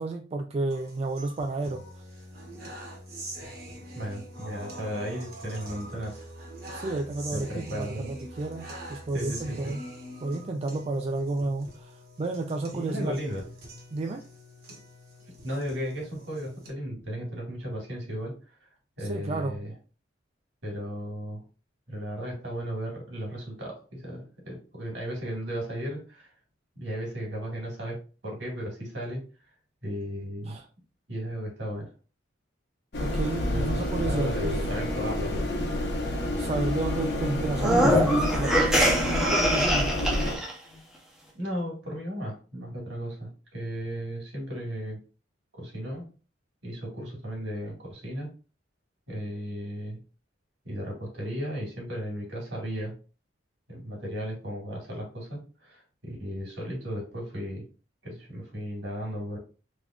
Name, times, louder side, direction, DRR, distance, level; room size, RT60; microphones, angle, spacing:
voice 1, 0.0-1.8 6.7-9.8 10.2-13.1 13.9-14.2 19.0-19.7 30.5-30.6 33.0-34.6 36.4-38.7 39.3-39.9, right 2 dB, 35° right, 4 dB, 0.3 m, -31 dB
sound 1, 0.7-16.7, right 1 dB, 55° right, 1.2 m, -44 dB
voice 2, 3.9-6.2 7.3-8.1 9.1-9.7 12.7-13.4 15.4-18.4 19.0-19.7 20.6-21.4 21.9-26.3 26.8-29.3 29.8-30.6 31.1-31.9 33.4-33.7 34.1-35.9 41.3-45.0 45.6-46.1 46.6-48.3 49.1-50.0 50.7-53.0 53.7-57.7 58.0-59.4, equal, 70° right, -1 dB, 2.0 m, -35 dB
sound 2, 32.9-40.4, left 1 dB, 60° left, 0.9 m, -29 dB
sound 3, 37.5-40.5, equal, ahead, 0.8 m, -23 dB
3.5 x 3.5 x 2.4 m, 0.35 s
head